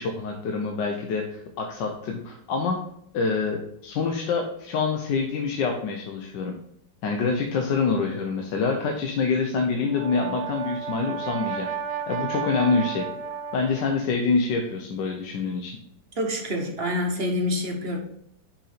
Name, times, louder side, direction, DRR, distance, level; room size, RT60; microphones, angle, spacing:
voice 1, 0.0-2.8 3.1-6.5 7.0-11.7 12.1-13.1 13.5-15.8, left 4 dB, 75° left, 3 dB, 1.4 m, -26 dB
Brass instrument, 9.8-14.0, right 6 dB, 75° right, 1.4 m, -32 dB
voice 2, 16.2-18.0, left 1 dB, 40° right, 2 dB, 1.1 m, -27 dB
5.9 x 5.7 x 4.1 m, 0.74 s
omnidirectional pair, 1.9 m